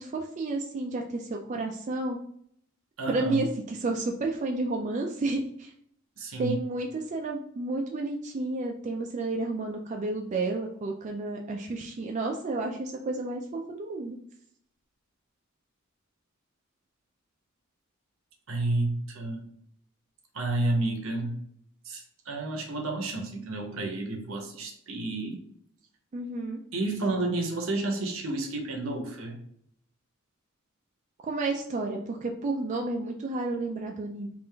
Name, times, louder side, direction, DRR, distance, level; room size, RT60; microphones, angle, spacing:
voice 1, 0.0-2.2 3.1-5.7 6.4-14.2 26.1-26.6 31.3-34.3, right 2 dB, 35° right, 1 dB, 0.3 m, -31 dB
voice 2, 3.0-3.4 6.2-6.6 18.5-19.4 20.3-21.4 21.8-25.4 26.7-29.4, right 2 dB, 75° right, 3 dB, 0.8 m, -31 dB
3.6 x 2.5 x 3.3 m, 0.67 s
head